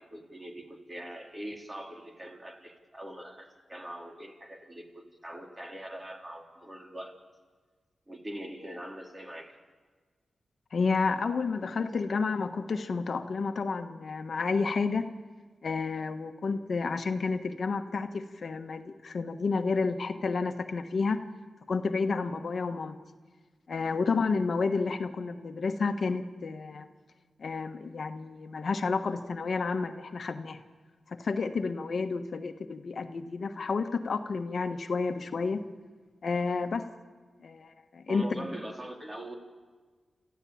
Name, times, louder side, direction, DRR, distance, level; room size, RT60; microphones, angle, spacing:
voice 1, 0.0-7.1 8.1-9.6 38.1-39.3, right 1 dB, 25° right, 2 dB, 3.8 m, -42 dB
voice 2, 10.7-15.1 15.6-21.2 21.7-23.0 23.7-26.9 27.4-30.6 31.1-35.6 36.2-36.9 37.4-38.5, left 4 dB, 65° left, 7 dB, 1.3 m, -30 dB
29.5 x 14.0 x 8.7 m, 1.4 s
cardioid pair, 65°, 0 cm